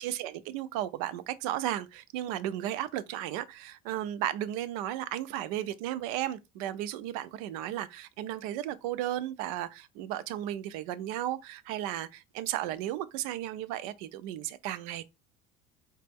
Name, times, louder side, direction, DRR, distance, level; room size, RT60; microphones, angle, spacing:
voice 1, 0.0-15.1, right 12 dB, 75° right, 0.5 m, -34 dB
5.0 x 2.2 x 3.4 m
cardioid pair, 165°, 18 cm